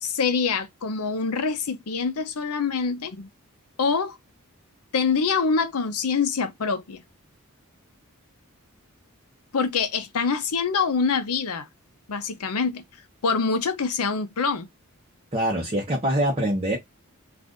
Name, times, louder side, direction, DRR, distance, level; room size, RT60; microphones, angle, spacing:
voice 1, 0.0-3.3 3.8-4.2 4.9-7.0 9.5-11.7 12.1-12.8 13.2-14.7, left 5 dB, 80° left, 0.6 m, -25 dB
voice 2, 15.3-16.8, right 1 dB, 25° right, 0.7 m, -24 dB
2.5 x 2.5 x 3.5 m
head